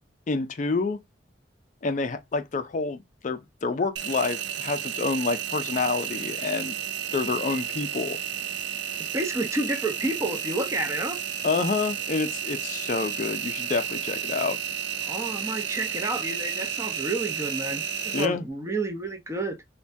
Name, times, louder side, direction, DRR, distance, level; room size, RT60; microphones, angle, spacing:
voice 1, 0.3-1.0 1.8-3.0 3.2-6.7 7.1-8.2 11.4-14.6 18.1-18.4, left 4 dB, 40° left, 0.4 m, -28 dB
Engine, 4.0-18.3, right 8 dB, 65° right, 0.4 m, -32 dB
voice 2, 9.0-11.2 15.1-19.6, right 2 dB, 15° right, 0.6 m, -30 dB
3.3 x 2.2 x 2.5 m
head